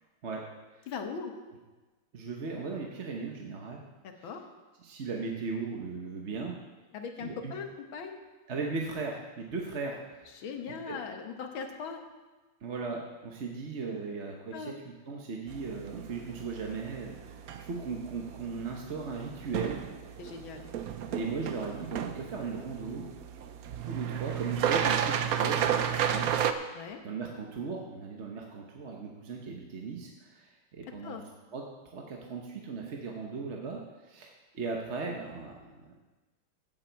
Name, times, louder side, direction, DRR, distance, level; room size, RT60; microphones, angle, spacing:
voice 1, 0.9-1.4 4.0-4.4 6.9-8.2 10.3-12.0 14.1-14.2 14.5-14.8 20.2-20.7 26.7-27.0 31.0-31.2, left 5 dB, 80° left, 5 dB, 2.0 m, -39 dB
voice 2, 2.1-3.8 4.2-4.3 4.8-6.6 7.2-7.5 8.5-10.3 10.9-11.0 12.6-19.8 21.1-23.0 23.9-26.3 27.0-31.2 31.5-31.7 31.9-35.9, right 4 dB, 40° right, 0 dB, 1.1 m, -37 dB
sound 1, 15.5-26.5, right 9 dB, 65° right, 0.9 m, -33 dB
16.0 x 8.1 x 4.6 m, 1.2 s
omnidirectional pair, 2.2 m